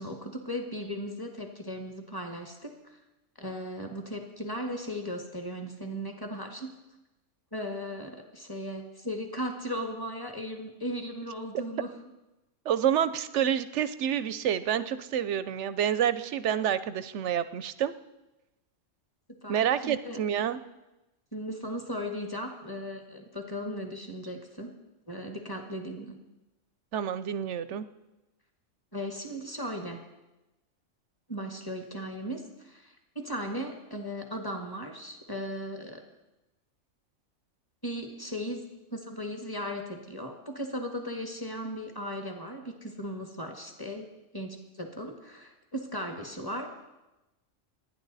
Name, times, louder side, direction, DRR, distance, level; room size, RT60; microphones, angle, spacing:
voice 1, 0.0-3.0 3.4-6.7 7.5-11.9 19.3-20.2 21.3-24.7 25.1-26.2 28.9-30.0 31.3-36.0 37.8-38.6 38.9-44.1 44.3-46.7, equal, 15° left, 3 dB, 1.7 m, -37 dB
voice 2, 12.6-17.9 19.5-20.6 26.9-27.9, right 9 dB, 65° right, 14 dB, 0.9 m, -28 dB
28.5 x 10.0 x 4.1 m, 1.0 s
omnidirectional pair, 1.4 m